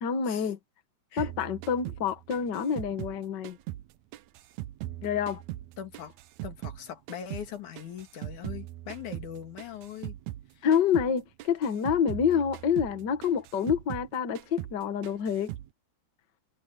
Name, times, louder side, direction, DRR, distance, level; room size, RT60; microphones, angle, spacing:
voice 1, 0.0-0.6 1.2-3.6 5.0-5.4 10.6-15.5, left 7 dB, 45° left, 1.5 m, -27 dB
sound 1, 1.2-6.8 7.1-10.5 10.7-11.1 11.4-14.1 14.4-14.8 15.0-15.7, right 15 dB, 75° right, 1.9 m, -40 dB
voice 2, 5.8-6.1 6.4-10.2 10.5-10.6 12.3-12.4, left 9 dB, 75° left, 3.3 m, -41 dB
omnidirectional pair, 3.6 m